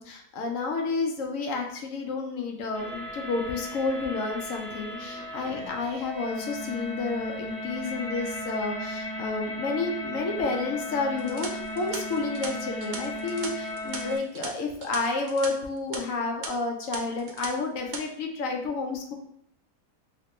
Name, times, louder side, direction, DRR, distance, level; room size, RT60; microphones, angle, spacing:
voice 1, 0.0-19.1, left 3 dB, 70° left, 2 dB, 0.9 m, -30 dB
sound 1, 2.7-14.2, left 1 dB, 20° left, 0.5 m, -36 dB
sound 2, 11.2-15.5 15.8-16.0 16.4-16.5 16.9-17.5 17.8-18.0, right 5 dB, 65° right, 0.8 m, -39 dB
3.1 x 2.9 x 3.0 m, 0.69 s
omnidirectional pair, 1.7 m